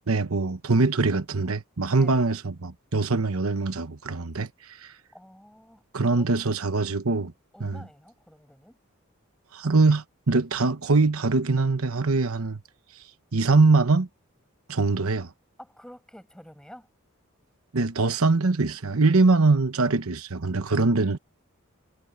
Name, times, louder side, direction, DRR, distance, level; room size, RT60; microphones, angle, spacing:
voice 1, 0.0-4.9 5.9-7.3 7.6-7.8 9.5-12.6 13.3-14.1 14.7-15.3 17.7-21.2, right 3 dB, 80° right, 1.0 m, -23 dB
voice 2, 1.9-2.3 5.1-6.6 7.5-8.8 15.6-16.9, equal, 5° left, 6.4 m, -49 dB
head